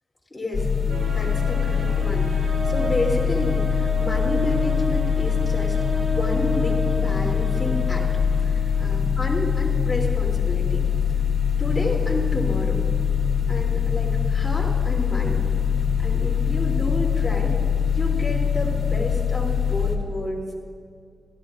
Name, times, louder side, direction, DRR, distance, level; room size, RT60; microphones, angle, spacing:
voice 1, 0.3-8.1 8.4-10.8 11.6-12.8 13.5-15.4 16.0-17.5 17.9-20.4, left 1 dB, 20° left, -5 dB, 2.9 m, -30 dB
sound 1, 0.5-20.0, left 7 dB, 60° left, 1.7 m, -23 dB
sound 2, 0.9-9.3, right 1 dB, 85° right, 3.3 m, -32 dB
22.5 x 13.0 x 2.5 m, 2.2 s
wide cardioid pair, 80°, 0 cm